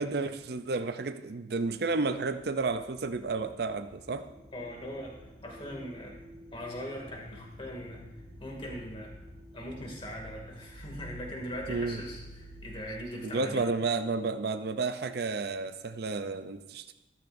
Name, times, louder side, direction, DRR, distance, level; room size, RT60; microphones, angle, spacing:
voice 1, 0.0-4.3 11.7-12.0 13.2-16.9, right 3 dB, 60° right, 10 dB, 0.5 m, -31 dB
sound 1, 2.6-12.8, equal, 10° left, 2.3 m, -50 dB
voice 2, 4.5-5.2 5.4-6.2 6.5-8.0 8.4-9.1 9.5-13.7, equal, 30° left, 0 dB, 2.4 m, -40 dB
14.0 x 13.5 x 2.6 m, 0.98 s
head